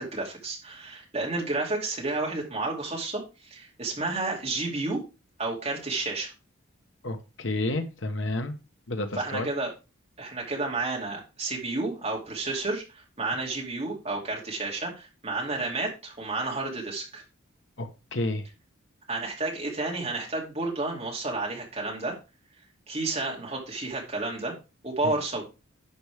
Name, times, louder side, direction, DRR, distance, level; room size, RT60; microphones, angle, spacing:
voice 1, 0.0-5.0 5.4-6.3 9.1-9.7 10.2-17.2 19.1-22.2 22.9-24.5 24.8-25.5, right 2 dB, 30° right, 2.7 m, -31 dB
voice 2, 7.0-8.5 8.9-9.5 17.8-18.5, left 2 dB, 65° left, 1.1 m, -30 dB
11.0 x 6.0 x 3.5 m
head